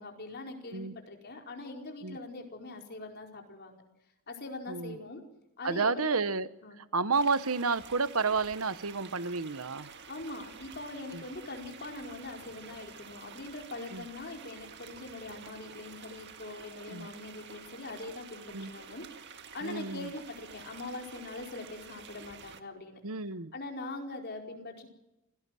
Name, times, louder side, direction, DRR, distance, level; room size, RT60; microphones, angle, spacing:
voice 1, 0.0-3.8 4.3-5.2 5.6-6.2 6.6-6.8 10.1-19.1 19.5-23.0 23.5-24.9, left 2 dB, 50° left, 2 dB, 4.7 m, -42 dB
voice 2, 4.7-5.0 5.6-6.5 6.8-9.9 11.1-11.2 13.9-14.0 16.9-17.1 18.5-18.7 19.6-20.1 23.0-23.5, right 4 dB, 85° right, 13 dB, 1.1 m, -31 dB
sound 1, 7.1-22.6, right 6 dB, 55° right, 1.8 m, -50 dB
26.5 x 18.0 x 7.7 m, 0.93 s
head